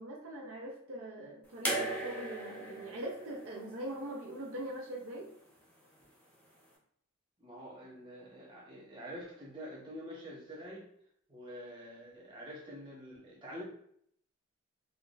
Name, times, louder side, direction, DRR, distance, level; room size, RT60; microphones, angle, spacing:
voice 1, 0.0-5.3, right 1 dB, 65° right, -2 dB, 0.5 m, -42 dB
sound 1, 1.6-4.8 6.0-6.1, right 1 dB, 10° left, 0.7 m, -38 dB
voice 2, 7.4-10.9 11.3-13.6, equal, 25° right, -6 dB, 1.1 m, -47 dB
3.6 x 2.2 x 2.5 m, 0.68 s
head